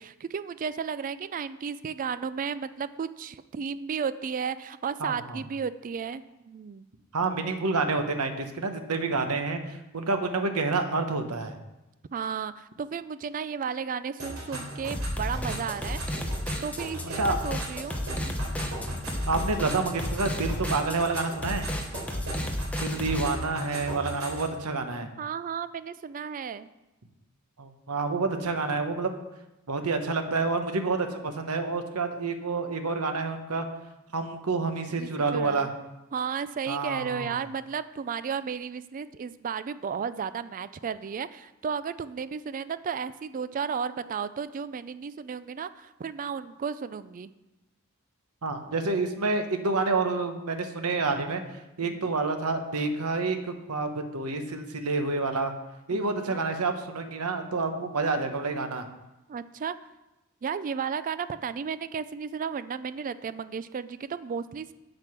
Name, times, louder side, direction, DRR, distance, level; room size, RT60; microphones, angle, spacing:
voice 1, 0.0-6.9 12.1-16.0 16.6-18.3 25.2-26.7 35.0-35.7 36.1-47.3 51.8-52.1 55.9-56.4 59.3-59.7 60.4-64.7, right 6 dB, 40° right, 14 dB, 0.3 m, -34 dB
voice 2, 5.0-5.4 7.1-11.5 17.0-17.4 19.3-21.7 22.8-25.1 27.6-29.1 29.7-33.7 34.1-35.7 36.7-37.4 48.4-51.4 51.8-53.4 53.7-55.5 55.9-58.8, right 3 dB, 85° right, 7 dB, 1.0 m, -28 dB
sound 1, 14.2-24.5, right 1 dB, 65° right, 3.7 m, -38 dB
sound 2, 14.9-23.3, left 1 dB, 5° left, 0.9 m, -32 dB
7.8 x 7.7 x 6.0 m, 0.98 s
head